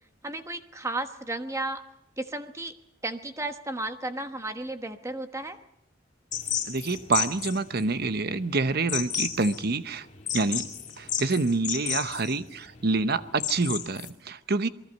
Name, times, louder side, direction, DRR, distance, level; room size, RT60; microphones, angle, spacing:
voice 1, 0.2-1.8 2.2-2.7 3.0-5.6, right 2 dB, 15° right, 8 dB, 1.3 m, -33 dB
sound 1, 6.3-14.1, left 9 dB, 40° left, 2.5 m, -33 dB
voice 2, 6.7-10.1 10.3-10.7 11.0-14.7, right 3 dB, 55° right, 12 dB, 0.9 m, -27 dB
27.5 x 20.5 x 5.4 m, 0.75 s
head